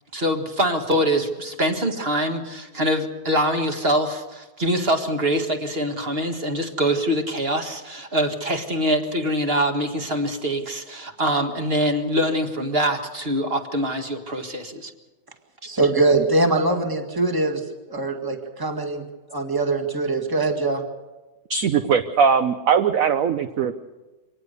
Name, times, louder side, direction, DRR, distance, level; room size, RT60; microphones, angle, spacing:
voice 1, 0.1-14.9, equal, 30° right, 5 dB, 1.9 m, -24 dB
voice 2, 15.7-19.0 19.3-20.8, right 2 dB, 10° right, 4 dB, 1.8 m, -22 dB
voice 3, 21.5-23.7, right 6 dB, 55° right, 8 dB, 1.0 m, -20 dB
24.5 x 19.0 x 6.7 m, 1.2 s
omnidirectional pair, 2.2 m